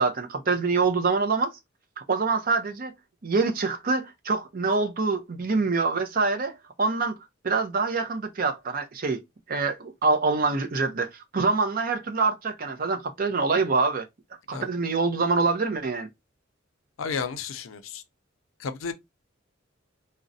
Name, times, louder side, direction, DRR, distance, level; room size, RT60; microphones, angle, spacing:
voice 1, 0.0-1.5 2.1-2.9 3.2-7.1 7.4-9.2 9.5-11.1 11.3-14.0 14.5-16.1, right 4 dB, 45° right, 0.6 m, -25 dB
voice 2, 17.0-18.0 18.6-18.9, left 5 dB, 80° left, 0.5 m, -32 dB
3.8 x 2.1 x 2.5 m
head